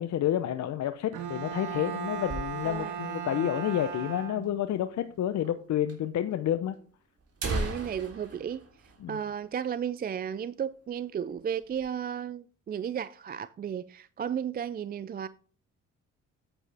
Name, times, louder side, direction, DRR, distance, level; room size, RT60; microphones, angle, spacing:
voice 1, 0.0-6.7 9.0-9.2, left 11 dB, 65° left, 0.8 m, -29 dB
Bowed string instrument, 1.1-4.9, right 7 dB, 80° right, 1.7 m, -37 dB
sound 1, 1.2-3.0 3.4-3.5 3.7-3.8 4.4-4.5 5.4-5.6 5.9-6.0 6.7-6.8 7.2-9.8 10.1-10.2 10.6-10.9 11.3-11.9, right 2 dB, 50° right, 3.5 m, -37 dB
voice 2, 2.6-3.0 7.4-8.6 9.1-15.3, right 8 dB, 30° right, 0.4 m, -34 dB
9.0 x 8.8 x 3.4 m
cardioid pair, 90°, 30 cm